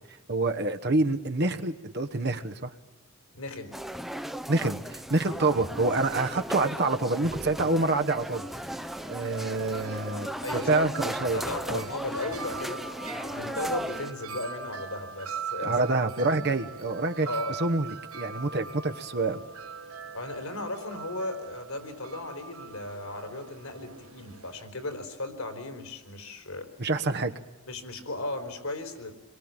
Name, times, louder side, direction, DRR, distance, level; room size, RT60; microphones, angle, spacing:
voice 1, 0.3-2.7 4.5-8.5 9.1-10.3 10.7-11.4 11.7-11.8 15.6-17.3 17.6-19.4 26.8-27.3, right 2 dB, 50° right, 6 dB, 1.2 m, -27 dB
voice 2, 3.3-3.7 5.2-5.3 10.4-10.9 11.3-12.8 13.1-15.9 16.3-16.4 17.2-17.6 20.1-26.7 27.7-29.1, left 2 dB, 75° left, 7 dB, 4.3 m, -36 dB
sound 1, 3.7-14.1, equal, ahead, 0.8 m, -36 dB
Wind chime, 8.2-24.7, right 6 dB, 75° right, 1.7 m, -42 dB
28.0 x 22.5 x 9.0 m, 1.2 s
head